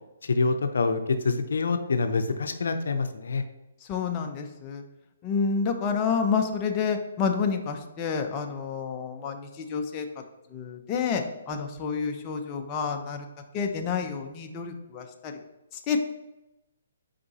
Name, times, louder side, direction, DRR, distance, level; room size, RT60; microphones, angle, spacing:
voice 1, 0.2-3.4, left 4 dB, 75° left, 8 dB, 0.6 m, -26 dB
voice 2, 3.8-4.8 5.2-10.1 10.5-13.2 13.5-15.3 15.7-16.0, left 5 dB, 25° left, 4 dB, 0.6 m, -29 dB
5.1 x 4.9 x 4.1 m, 0.98 s
hypercardioid pair, 150°, 0 cm